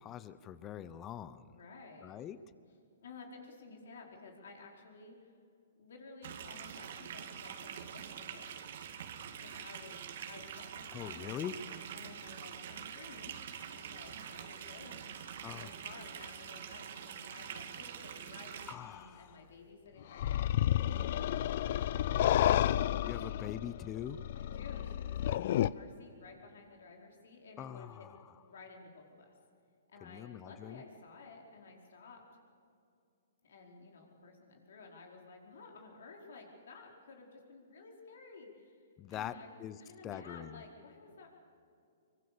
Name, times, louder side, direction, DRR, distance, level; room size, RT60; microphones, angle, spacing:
voice 1, 0.0-1.5 2.0-2.4 10.9-11.5 15.4-15.7 18.7-19.4 23.0-24.2 27.6-28.2 30.0-30.8 39.0-39.8 40.0-40.6, left 10 dB, 25° left, 16 dB, 0.8 m, -43 dB
voice 2, 1.4-2.2 3.0-5.3 5.8-8.6 9.4-11.5 11.9-13.4 13.7-15.2 15.4-22.4 24.3-28.1 28.4-29.3 29.9-32.2 33.4-38.8 39.1-41.3, left 4 dB, 70° left, 1 dB, 4.7 m, -54 dB
sound 1, 6.2-18.7, right 8 dB, 60° right, 2.0 m, -45 dB
sound 2, 20.2-25.7, left 12 dB, 55° left, 0.5 m, -31 dB
23.5 x 22.0 x 7.0 m, 2.5 s
hypercardioid pair, 135°, 0 cm